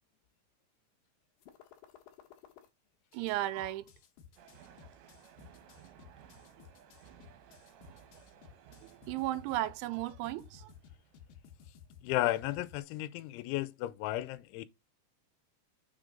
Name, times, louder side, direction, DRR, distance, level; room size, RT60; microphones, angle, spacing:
sound 1, 1.4-2.7 3.1-12.8, left 9 dB, 70° left, 2.3 m, -56 dB
voice 1, 3.1-3.9 8.8-10.7, right 15 dB, 90° right, 3.0 m, -35 dB
sound 2, 4.4-11.4, right 8 dB, 75° right, 3.1 m, -58 dB
voice 2, 12.0-14.7, left 15 dB, 85° left, 2.9 m, -34 dB
6.7 x 3.7 x 5.1 m
omnidirectional pair, 5.3 m